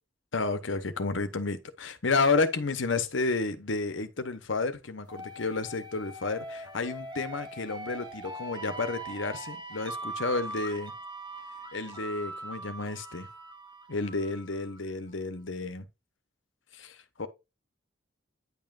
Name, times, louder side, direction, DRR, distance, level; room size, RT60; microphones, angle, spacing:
voice 1, 0.3-10.9 11.7-13.3 13.9-15.9 16.7-17.3, left 3 dB, 70° left, 1.0 m, -31 dB
sound 1, 5.1-14.8, right 2 dB, 20° right, 1.5 m, -41 dB
9.9 x 5.5 x 2.5 m
head